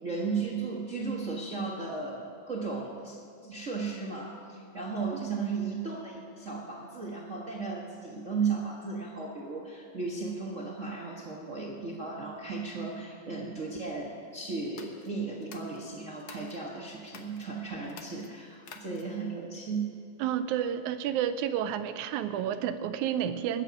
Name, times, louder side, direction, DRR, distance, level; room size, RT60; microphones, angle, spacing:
voice 1, 0.0-3.2 3.4-19.9, right 4 dB, 60° right, -3 dB, 0.8 m, -35 dB
sound 1, 14.6-16.6 17.0-17.5 17.8-19.3, left 6 dB, 65° left, 1.9 m, -50 dB
voice 2, 20.2-23.6, right 9 dB, 80° right, 11 dB, 1.9 m, -30 dB
21.5 x 8.5 x 5.2 m, 2.5 s
omnidirectional pair, 3.6 m